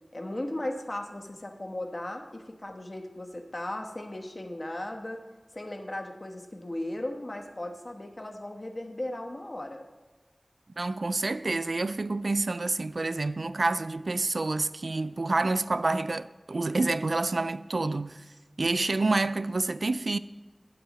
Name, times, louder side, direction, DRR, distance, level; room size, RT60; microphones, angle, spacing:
voice 1, 0.1-5.2 5.5-9.8, left 1 dB, 55° left, 1.2 m, -36 dB
voice 2, 10.8-18.2 18.6-20.2, right 3 dB, 80° right, 0.3 m, -28 dB
12.5 x 9.2 x 3.0 m
wide cardioid pair, 45°, 0 cm